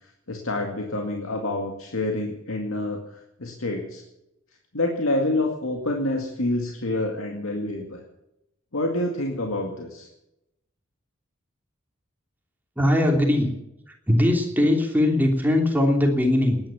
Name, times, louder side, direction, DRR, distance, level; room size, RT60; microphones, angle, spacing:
voice 1, 0.3-4.0 4.7-8.0 8.7-10.1, left 2 dB, 90° left, 2 dB, 2.2 m, -27 dB
voice 2, 12.8-13.5 14.1-16.6, left 1 dB, 10° right, 2 dB, 3.0 m, -20 dB
19.0 x 10.5 x 7.1 m, 0.86 s
head